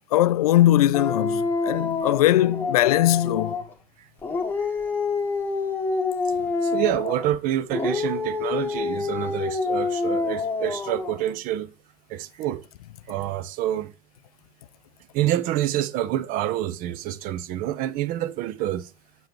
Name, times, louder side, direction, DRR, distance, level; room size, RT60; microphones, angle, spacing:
voice 1, 0.1-3.6, left 14 dB, 70° left, 0.4 m, -20 dB
Dog, 0.9-3.7 4.2-7.3 7.7-11.2, left 4 dB, 10° left, 1.2 m, -27 dB
voice 2, 6.6-11.7 12.1-12.6 13.1-13.9 15.1-18.9, right 13 dB, 45° right, 0.6 m, -27 dB
7.8 x 4.8 x 3.1 m
hypercardioid pair, 85°, 20 cm